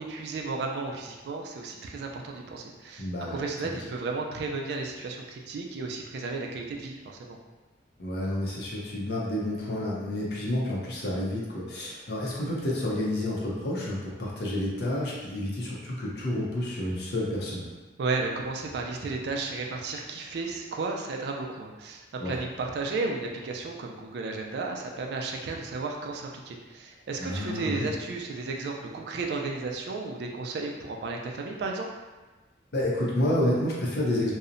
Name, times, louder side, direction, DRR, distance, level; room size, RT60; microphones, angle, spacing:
voice 1, 0.0-7.4 18.0-31.9, right 3 dB, 60° right, 1 dB, 0.3 m, -33 dB
voice 2, 3.0-3.4 8.0-17.7 22.2-22.4 27.2-27.9 32.7-34.3, left 1 dB, 55° left, -4 dB, 0.6 m, -29 dB
2.7 x 2.0 x 2.5 m, 1.2 s
head